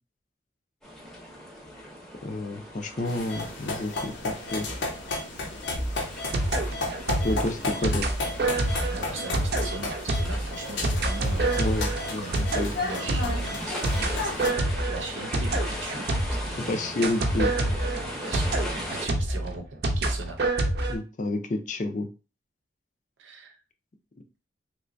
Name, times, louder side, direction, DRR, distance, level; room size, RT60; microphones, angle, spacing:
sound 1, 0.8-19.1, equal, 5° left, 0.7 m, -39 dB
voice 1, 2.2-4.7 7.2-8.1 11.6-12.2 12.5-12.7 16.6-17.5 20.9-22.1, left 2 dB, 40° left, 6 dB, 0.4 m, -29 dB
sound 2, 3.1-14.5, left 2 dB, 80° left, 0.7 m, -34 dB
sound 3, 5.7-16.6 17.0-20.9, right 2 dB, 60° right, 0.6 m, -27 dB
voice 2, 8.9-11.5 12.2-12.5 12.8-16.9 18.2-20.4 23.2-23.6, right 3 dB, 90° right, 4 dB, 0.8 m, -40 dB
3.2 x 3.0 x 2.6 m, 0.32 s
head